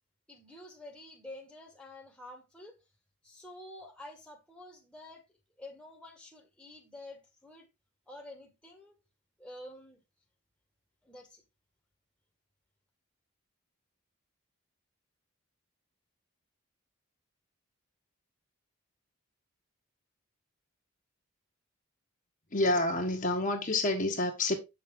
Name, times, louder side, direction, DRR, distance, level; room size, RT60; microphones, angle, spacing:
voice 1, 0.3-2.8 3.2-5.2 5.6-7.7 8.1-9.0 9.4-10.0 11.0-11.4, left 1 dB, 5° left, 1.7 m, -49 dB
voice 2, 22.5-24.6, left 2 dB, 40° left, 1.4 m, -28 dB
8.5 x 6.1 x 3.7 m
head